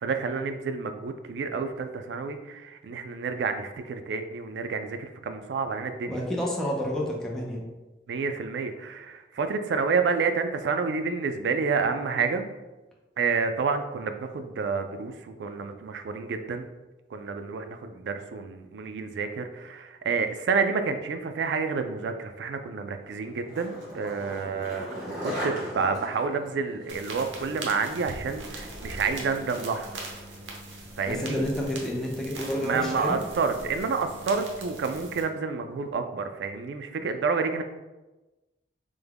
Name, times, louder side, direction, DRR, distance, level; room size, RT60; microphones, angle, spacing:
voice 1, 0.0-6.2 8.1-12.5 13.2-16.7 17.1-30.0 31.0-31.5 32.6-37.6, right 5 dB, 70° right, 8 dB, 0.3 m, -29 dB
voice 2, 6.1-7.6 31.1-33.2, equal, 5° left, -3 dB, 0.4 m, -29 dB
Skateboard, 23.1-31.4, equal, 45° right, 1.4 m, -40 dB
sound 1, 26.9-35.2, right 2 dB, 85° right, 0.7 m, -41 dB
3.4 x 2.1 x 3.4 m, 1.1 s
head